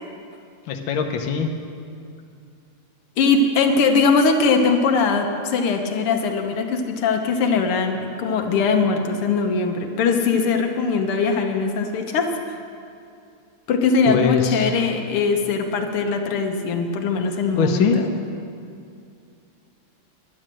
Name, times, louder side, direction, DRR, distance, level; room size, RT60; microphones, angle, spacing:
voice 1, 0.7-1.5 14.1-14.7 17.5-18.0, left 6 dB, 70° left, 4 dB, 1.6 m, -21 dB
voice 2, 3.2-12.6 13.7-18.1, left 4 dB, 85° left, 4 dB, 1.9 m, -21 dB
11.5 x 10.5 x 7.5 m, 2.5 s
omnidirectional pair, 2.4 m